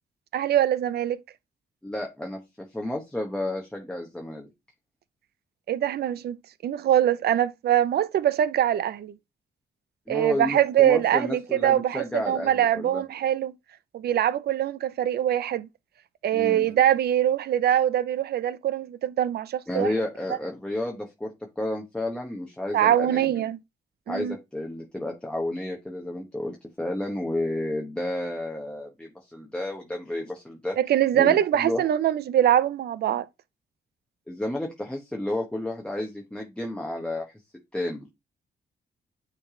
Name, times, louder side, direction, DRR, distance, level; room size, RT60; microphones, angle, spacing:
voice 1, 0.3-1.2 5.7-6.4 6.6-9.1 10.1-13.5 13.9-15.7 16.2-19.9 22.7-23.6 24.1-24.4 30.8-33.3, right 11 dB, 65° right, 0.5 m, -23 dB
voice 2, 1.8-4.5 10.1-13.0 16.3-16.7 19.7-23.4 24.1-30.8 31.1-31.8 34.3-37.3 37.7-38.1, left 1 dB, 5° left, 1.0 m, -31 dB
9.4 x 3.3 x 3.7 m
wide cardioid pair, 145°, 18 cm